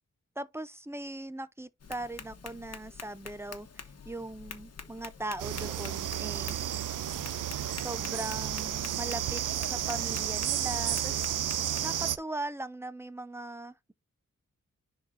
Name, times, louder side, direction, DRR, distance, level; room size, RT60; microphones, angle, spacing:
voice 1, 0.4-6.6 7.8-11.3 11.8-13.9, right 1 dB, 10° right, 0.6 m, -39 dB
Tap, 1.8-11.8, left 6 dB, 55° left, 1.2 m, -47 dB
sound 1, 5.4-12.2, right 11 dB, 85° right, 0.5 m, -32 dB
10.5 x 4.1 x 2.5 m
wide cardioid pair, 120°, 31 cm